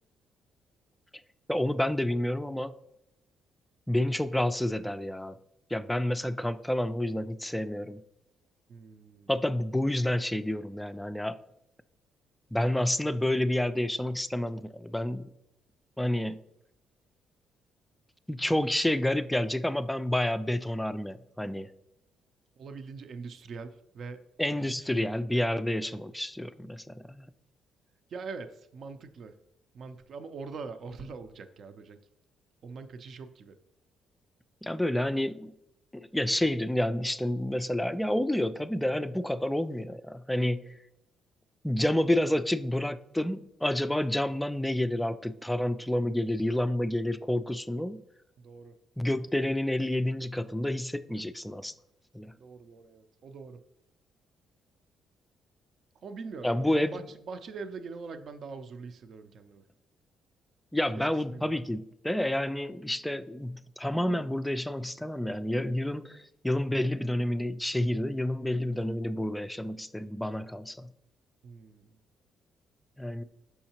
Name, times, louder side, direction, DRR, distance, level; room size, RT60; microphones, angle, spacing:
voice 1, 1.5-2.7 3.9-5.4 5.7-8.0 9.3-11.4 12.5-15.3 16.0-16.4 18.3-21.7 24.4-27.3 34.6-35.5 35.9-40.8 41.6-48.0 49.0-51.7 52.1-52.3 56.4-57.0 60.7-70.9 73.0-73.2, left 1 dB, 5° left, 12 dB, 0.3 m, -29 dB
voice 2, 8.7-9.3 22.6-24.2 24.9-25.0 25.8-26.0 28.1-29.4 29.7-32.0 32.6-33.6 48.4-48.8 52.4-53.6 56.0-59.6 61.3-61.6 71.4-71.9, right 4 dB, 55° right, 9 dB, 0.5 m, -43 dB
6.2 x 5.6 x 2.9 m, 0.82 s
cardioid pair, 100°, 0 cm